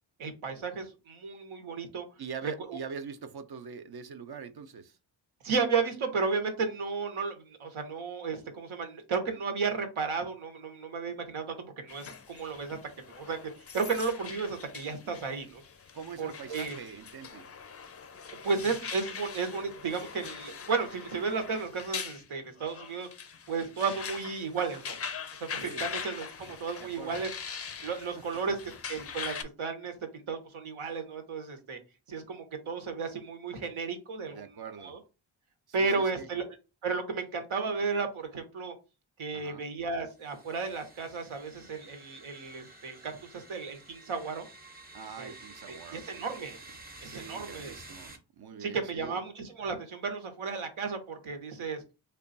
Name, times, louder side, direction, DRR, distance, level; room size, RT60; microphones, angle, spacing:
voice 1, 0.2-2.0 2.4-2.8 5.4-15.6 16.2-16.8 18.4-23.1 23.5-25.0 25.4-27.3 27.8-28.6 28.9-31.8 32.1-34.5 34.8-35.0 35.7-36.4 36.8-38.7 39.2-44.4 45.2-45.3 45.7-46.6 47.0-47.8 48.6-51.8, right 4 dB, 85° right, 1.0 m, -33 dB
voice 2, 2.2-5.0 15.9-17.5 25.6-25.8 26.8-27.3 34.2-35.0 35.8-36.3 39.3-39.7 44.9-46.3 47.0-49.2, right 6 dB, 55° right, 0.5 m, -44 dB
sound 1, 11.9-29.4, left 6 dB, 35° left, 0.4 m, -42 dB
sound 2, 40.2-48.2, right 2 dB, 20° right, 0.7 m, -51 dB
3.3 x 2.3 x 3.9 m
wide cardioid pair, 85°, 48 cm